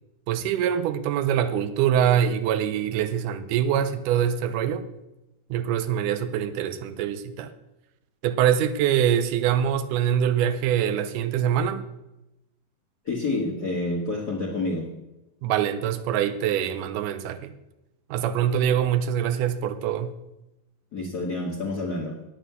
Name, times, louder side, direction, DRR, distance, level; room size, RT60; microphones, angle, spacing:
voice 1, 0.3-4.9 5.5-7.5 8.2-11.8 15.4-17.5 18.1-20.1, right 9 dB, 80° right, 2.0 m, -24 dB
voice 2, 13.0-14.9 20.9-22.2, left 2 dB, 85° left, 0.8 m, -28 dB
9.1 x 9.0 x 6.7 m
omnidirectional pair, 4.3 m